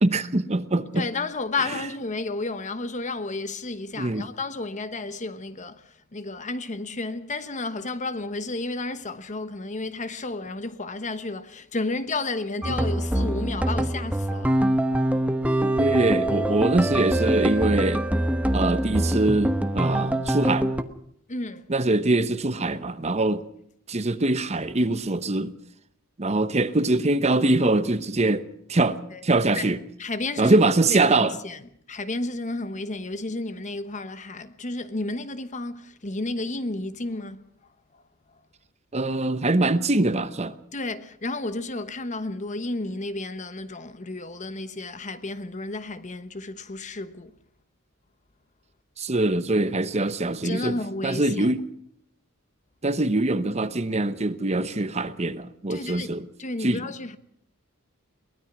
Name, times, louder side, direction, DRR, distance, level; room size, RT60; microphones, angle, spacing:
voice 1, 0.0-1.1 4.0-4.3 15.8-18.0 18.5-20.7 21.7-23.4 23.9-25.5 26.2-28.4 28.7-29.0 29.2-29.8 30.4-31.4 38.9-40.5 49.0-50.8 51.0-51.6 52.8-56.3 56.6-56.8, right 2 dB, 30° right, 0.9 m, -23 dB
voice 2, 0.9-14.6 21.3-21.7 29.1-29.2 29.6-29.7 30.0-31.6 31.9-37.4 37.9-38.0 40.7-47.4 50.4-51.5 55.7-56.1 56.4-57.2, left 2 dB, 35° left, 1.1 m, -32 dB
sound 1, 12.6-20.8, right 1 dB, 5° right, 1.0 m, -24 dB
23.0 x 20.0 x 6.1 m
head